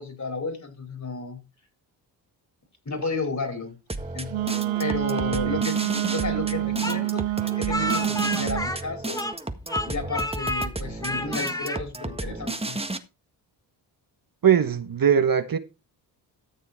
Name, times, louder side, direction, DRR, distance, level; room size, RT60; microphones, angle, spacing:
voice 1, 0.0-1.4 2.8-3.8 4.1-7.2 7.6-9.3 9.8-12.8, left 3 dB, 40° left, 5.1 m, -33 dB
sound 1, 3.9-13.0, right 2 dB, 15° right, 1.6 m, -33 dB
Wind instrument woodwind instrument, 4.3-8.7, right 17 dB, 85° right, 0.7 m, -27 dB
Speech, 6.8-9.4 9.7-10.7 11.0-11.8, left 1 dB, 10° left, 1.5 m, -30 dB
voice 2, 14.4-15.6, right 8 dB, 50° right, 1.4 m, -20 dB
14.0 x 6.8 x 4.5 m
supercardioid pair, 50°, 46 cm